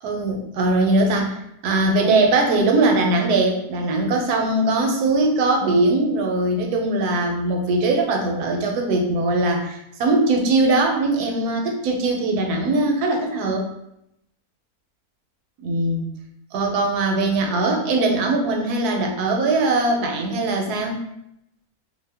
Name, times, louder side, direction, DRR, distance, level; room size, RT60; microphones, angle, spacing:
voice 1, 0.0-1.4 1.6-13.6 15.6-16.0 16.5-21.0, right 2 dB, 90° right, 1 dB, 1.1 m, -21 dB
2.8 x 2.0 x 3.2 m, 0.79 s
omnidirectional pair, 1.6 m